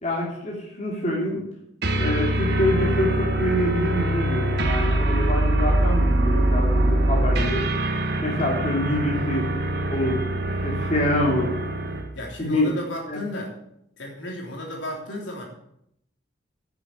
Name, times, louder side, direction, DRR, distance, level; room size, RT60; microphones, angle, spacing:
voice 1, 0.0-1.4 1.9-7.7 8.2-9.5 9.9-10.2 10.6-11.5 12.4-12.7 13.1-13.2, left 1 dB, 35° left, -3 dB, 3.1 m, -25 dB
sound 1, 1.8-12.1, right 1 dB, 55° right, 1.4 m, -23 dB
voice 2, 12.1-13.5 14.0-15.4, left 1 dB, 70° left, -1 dB, 3.4 m, -33 dB
10.0 x 7.1 x 8.9 m, 0.76 s
head